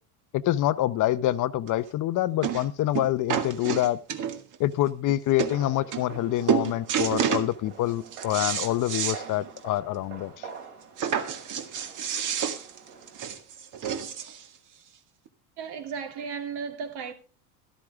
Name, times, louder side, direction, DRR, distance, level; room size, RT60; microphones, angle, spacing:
voice 1, 0.3-4.0 4.6-10.5, left 14 dB, 45° left, 0.8 m, -26 dB
sound 1, 1.7-1.8 2.4-2.7 2.9-4.6 5.1-5.2 5.4-5.6 5.9-6.2 6.5-7.5 7.9-9.2 9.6-9.7 10.0-10.1 11.0-14.4 15.3-15.4, right 8 dB, 45° right, 2.0 m, -29 dB
sound 2, 5.5-13.3, right 6 dB, 85° right, 6.0 m, -46 dB
voice 2, 15.6-17.1, right 6 dB, 60° right, 2.9 m, -35 dB
13.0 x 13.0 x 3.5 m
supercardioid pair, 115°, 44 cm